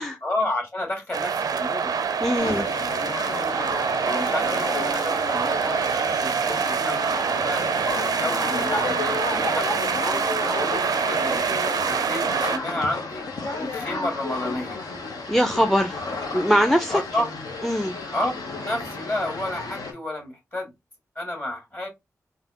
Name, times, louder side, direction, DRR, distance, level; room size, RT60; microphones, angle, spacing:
voice 1, 0.2-2.0 2.4-2.9 3.3-3.6 4.0-6.9 7.2-7.7 8.1-10.3 10.5-11.5 11.8-13.2 13.6-14.8 16.9-17.3 18.1-18.3 18.7-20.7 21.2-21.9, left 1 dB, 35° left, 2.0 m, -31 dB
sound 1, 1.1-12.6, right 6 dB, 80° right, 0.4 m, -25 dB
voice 2, 2.2-2.7 15.3-16.0 16.3-17.0 17.6-17.9, equal, ahead, 0.5 m, -21 dB
sound 2, 2.4-19.9, left 3 dB, 80° left, 0.8 m, -33 dB
3.7 x 2.1 x 2.9 m
cardioid pair, 45°, 7 cm